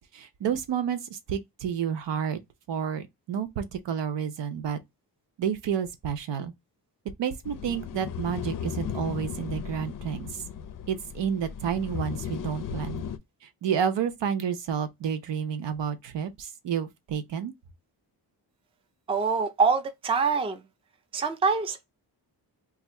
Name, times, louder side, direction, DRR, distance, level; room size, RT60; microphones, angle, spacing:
voice 1, 0.1-2.4 2.7-4.8 5.4-6.5 7.2-10.4 10.9-13.0 13.6-17.5, right 8 dB, 80° right, 0.8 m, -30 dB
sound 1, 7.4-13.2, left 8 dB, 50° left, 0.5 m, -36 dB
voice 2, 19.1-20.6 21.1-21.9, right 5 dB, 15° right, 0.3 m, -25 dB
2.6 x 2.5 x 4.2 m
wide cardioid pair, 165°, 42 cm